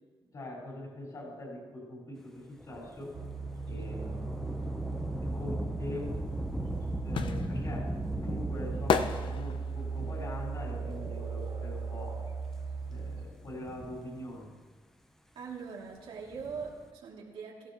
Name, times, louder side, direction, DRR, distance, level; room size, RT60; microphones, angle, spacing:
voice 1, 0.2-3.2 3.7-4.5 5.2-6.2 7.0-12.2 12.9-14.5, left 1 dB, 45° left, -2 dB, 4.5 m, -43 dB
Thunder / Rain, 2.6-11.6 12.3-12.4 13.3-14.6 16.1-16.9, left 1 dB, 5° left, 0.7 m, -40 dB
sound 1, 3.1-13.3, right 4 dB, 65° right, 3.0 m, -37 dB
sound 2, 6.3-12.1 12.4-14.0 14.2-14.3, left 6 dB, 65° left, 0.6 m, -34 dB
voice 2, 15.3-17.7, right 5 dB, 90° right, -2 dB, 2.5 m, -42 dB
17.0 x 15.0 x 3.0 m, 1.4 s
wide cardioid pair, 155°, 9 cm